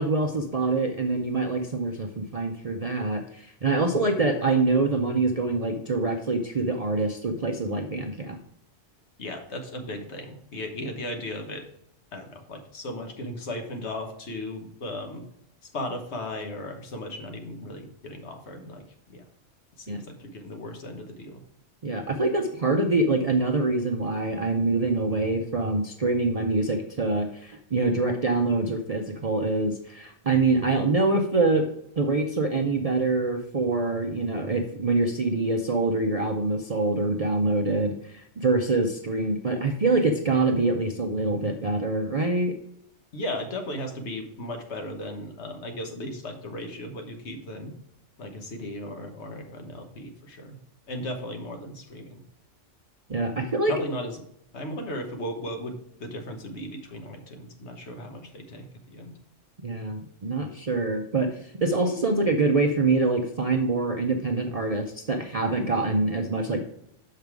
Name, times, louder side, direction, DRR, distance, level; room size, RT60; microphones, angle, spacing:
voice 1, 0.0-8.4 19.9-20.0 21.8-31.7 32.0-42.5 53.1-53.7 59.6-66.6, right 3 dB, 45° right, 3 dB, 0.5 m, -25 dB
voice 2, 9.2-11.6 12.1-15.2 15.7-19.2 19.8-21.4 43.1-47.7 48.2-50.6 50.9-52.2 53.7-54.2 54.5-59.1, left 1 dB, 60° left, 4 dB, 1.4 m, -36 dB
6.6 x 5.3 x 4.6 m, 0.72 s
omnidirectional pair, 1.3 m